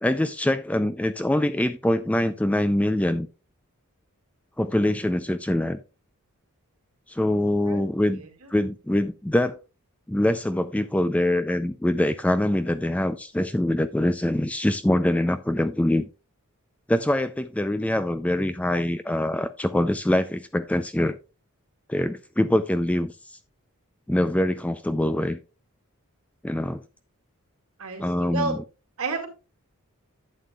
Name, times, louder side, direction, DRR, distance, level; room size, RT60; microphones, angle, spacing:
voice 1, 0.0-3.3 4.6-5.8 7.1-8.2 8.5-9.6 10.1-16.1 16.9-21.2 21.9-23.4 24.1-25.4 26.4-26.8 28.0-28.6, left 1 dB, 5° left, 0.3 m, -24 dB
voice 2, 8.1-8.5 27.8-28.6 29.0-29.3, right 3 dB, 75° right, 2.2 m, -31 dB
11.5 x 8.4 x 2.3 m
head